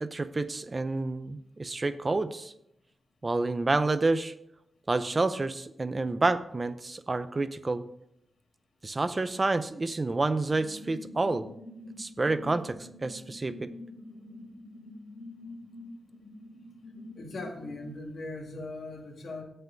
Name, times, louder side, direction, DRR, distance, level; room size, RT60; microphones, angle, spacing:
voice 1, 0.0-2.5 3.2-4.3 4.9-7.8 8.8-11.4 12.0-13.7, right 3 dB, 25° right, 12 dB, 0.6 m, -29 dB
sound 1, 10.5-17.8, left 1 dB, 30° left, 3.5 m, -46 dB
voice 2, 17.2-19.4, left 2 dB, 60° left, 2 dB, 2.0 m, -39 dB
17.0 x 5.7 x 3.9 m, 0.76 s
wide cardioid pair, 155°, 0 cm